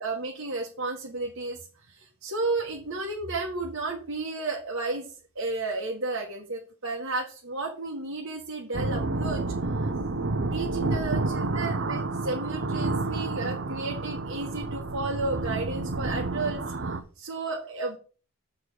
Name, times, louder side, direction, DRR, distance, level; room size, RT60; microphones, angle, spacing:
voice 1, 0.0-1.6 1.9-5.1 5.4-9.4 9.8-9.9 10.5-18.0, right 3 dB, 80° right, -2 dB, 1.8 m, -32 dB
sound 1, 8.7-17.0, right 2 dB, 60° right, 0.8 m, -30 dB
7.6 x 4.9 x 6.3 m, 0.37 s
head